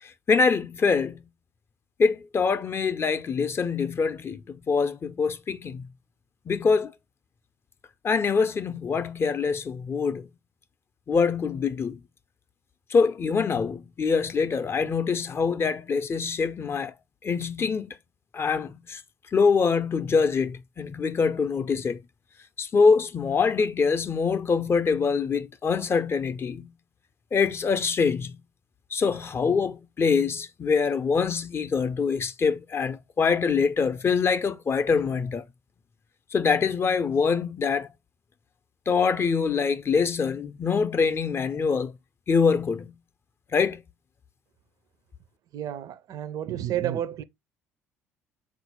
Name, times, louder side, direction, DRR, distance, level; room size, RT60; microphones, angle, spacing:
voice 1, 0.0-1.2 2.0-5.8 6.5-6.9 8.0-10.3 11.1-12.0 12.9-16.9 17.2-18.0 18.3-19.0 19.3-22.0 22.6-26.7 27.3-28.4 28.9-35.4 36.3-37.9 38.9-41.9 42.3-42.9 43.5-43.8, left 5 dB, 30° left, 0.5 m, -24 dB
voice 2, 45.5-47.2, right 11 dB, 55° right, 0.5 m, -30 dB
3.8 x 2.4 x 4.3 m
hypercardioid pair, 60°, 8 cm